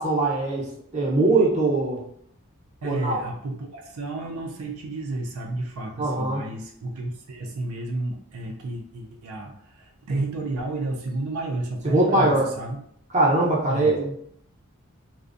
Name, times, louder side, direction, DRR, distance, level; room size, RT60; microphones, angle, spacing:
voice 1, 0.0-2.0 2.8-3.2 6.0-6.4 11.8-12.5 13.1-14.1, right 2 dB, 30° right, -4 dB, 0.6 m, -22 dB
voice 2, 2.8-12.8 13.7-14.0, right 2 dB, 85° right, 1 dB, 0.4 m, -31 dB
2.5 x 2.1 x 2.4 m, 0.68 s
head